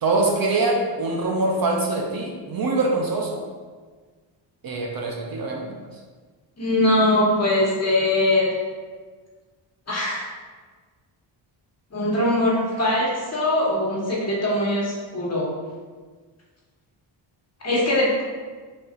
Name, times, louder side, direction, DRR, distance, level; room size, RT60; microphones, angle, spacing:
voice 1, 0.0-3.4 4.6-5.7, right 2 dB, 45° right, 0 dB, 0.7 m, -24 dB
voice 2, 6.6-8.5 9.9-10.3 11.9-15.5 17.6-18.2, left 1 dB, 30° left, -5 dB, 1.3 m, -21 dB
4.2 x 3.9 x 2.5 m, 1.5 s
cardioid pair, 90°, 48 cm